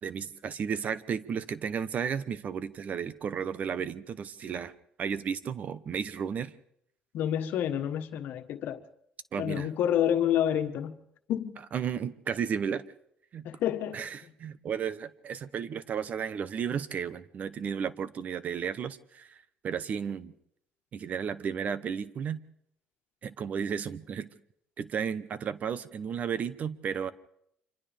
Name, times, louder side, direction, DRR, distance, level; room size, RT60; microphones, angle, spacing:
voice 1, 0.0-4.7 5.0-6.5 9.3-9.7 11.7-12.8 13.3-13.5 13.9-20.3 20.9-22.4 23.2-24.3 24.8-27.1, right 7 dB, 50° right, 1.1 m, -33 dB
voice 2, 7.1-8.8 9.4-10.9 11.3-11.6 13.4-14.0, left 10 dB, 70° left, 1.4 m, -28 dB
30.0 x 25.5 x 3.6 m
cardioid pair, 95°, 3 cm